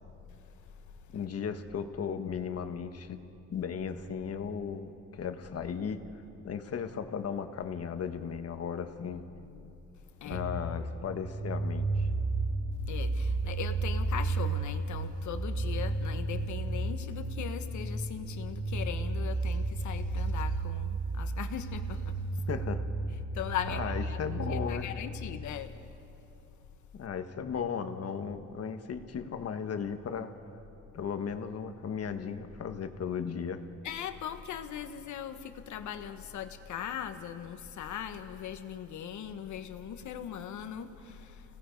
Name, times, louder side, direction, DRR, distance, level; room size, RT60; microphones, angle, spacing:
voice 1, 1.1-3.2 3.5-6.0 6.4-9.2 10.2-12.1 22.5-22.8 23.7-24.9 26.9-30.3 30.9-33.6, left 7 dB, 55° left, 8 dB, 1.4 m, -36 dB
voice 2, 9.4-9.7 10.2-10.4 12.9-22.0 23.3-25.7 33.8-41.4, left 9 dB, 75° left, 8 dB, 1.4 m, -39 dB
sound 1, 10.3-24.6, right 2 dB, 85° right, 3.5 m, -33 dB
30.0 x 18.0 x 5.3 m, 2.8 s
cardioid pair, 90°, 30 cm